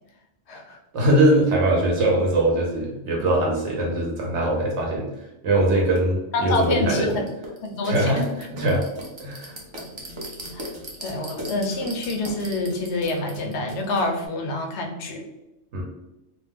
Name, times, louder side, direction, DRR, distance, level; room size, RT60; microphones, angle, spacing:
voice 1, 0.9-5.1 5.4-7.2 7.8-8.8 9.2-9.6 15.7-15.8, right 1 dB, 70° right, -2 dB, 1.0 m, -21 dB
sound 1, 5.9-6.0 6.6-14.2, right 1 dB, 40° right, 0.4 m, -38 dB
voice 2, 6.3-7.2 7.6-8.2 10.5-10.7 11.0-15.2, left 2 dB, 70° left, 2 dB, 0.8 m, -27 dB
2.5 x 2.1 x 3.4 m, 0.95 s
omnidirectional pair, 1.2 m